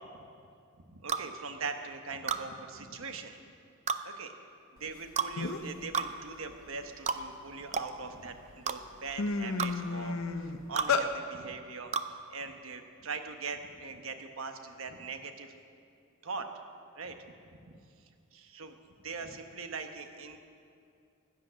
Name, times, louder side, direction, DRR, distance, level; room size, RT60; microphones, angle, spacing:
voice 1, 0.8-3.4 4.0-4.3 4.7-15.5 16.2-16.5 16.9-17.2 17.5-17.8 18.3-18.8 19.0-20.4, right 4 dB, 80° right, 6 dB, 1.1 m, -41 dB
sound 1, 1.1-1.3 2.3-2.4 3.9-4.0 5.2-5.3 5.9-6.1 7.1-7.2 7.7-7.9 8.7-8.8 9.6-9.7 10.8-10.9 11.9-12.1, right 6 dB, 35° right, 0.5 m, -31 dB
sound 2, 5.0-5.1 5.4-5.8 6.2-7.8 8.4-8.5 8.8-11.1, left 4 dB, 80° left, 0.8 m, -32 dB
16.0 x 10.5 x 6.4 m, 2.4 s
head